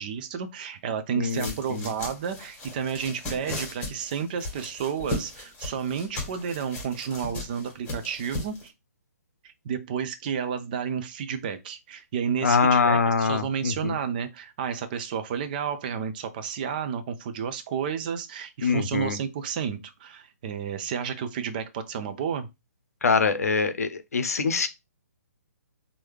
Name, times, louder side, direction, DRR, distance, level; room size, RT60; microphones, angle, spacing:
voice 1, 0.0-8.7 9.4-22.5, right 7 dB, 30° right, 0.5 m, -31 dB
voice 2, 1.2-1.9 12.4-14.0 18.6-19.2 23.0-24.7, left 5 dB, 60° left, 0.7 m, -24 dB
sound 1, 1.3-8.7, left 2 dB, 15° left, 1.7 m, -37 dB
4.5 x 2.7 x 3.2 m
figure-of-eight pair, 130°, 9 cm